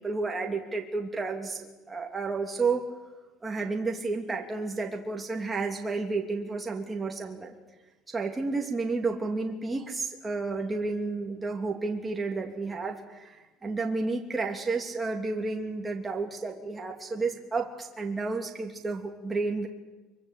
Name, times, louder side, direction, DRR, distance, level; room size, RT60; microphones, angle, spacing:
voice 1, 0.0-2.8 3.4-7.5 8.1-19.7, right 3 dB, 15° right, 2 dB, 2.9 m, -31 dB
24.0 x 24.0 x 8.4 m, 1.2 s
cardioid pair, 135°, 0 cm